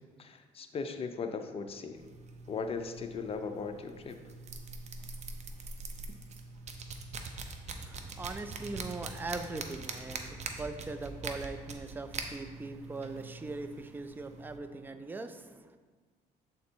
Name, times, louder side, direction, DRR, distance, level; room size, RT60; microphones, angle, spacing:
voice 1, 0.2-2.0 2.5-4.2, left 5 dB, 35° left, 6 dB, 0.6 m, -38 dB
sound 1, 2.0-14.6, right 3 dB, 40° right, 0.7 m, -43 dB
voice 2, 7.7-15.8, right 3 dB, 10° right, 9 dB, 0.4 m, -41 dB
7.6 x 4.1 x 4.4 m, 1.4 s
cardioid pair, 110°, 17 cm